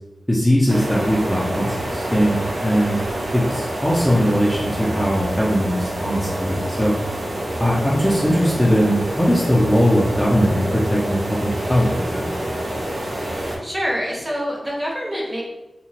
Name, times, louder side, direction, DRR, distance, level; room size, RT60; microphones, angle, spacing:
voice 1, 0.3-3.0 3.3-7.0 7.6-12.3, equal, 5° left, -6 dB, 0.4 m, -20 dB
sound 1, 0.7-13.6, right 1 dB, 80° right, 0.5 m, -27 dB
voice 2, 13.2-15.4, equal, 20° right, -3 dB, 0.8 m, -27 dB
2.8 x 2.2 x 2.8 m, 0.99 s
wide cardioid pair, 90°, 0 cm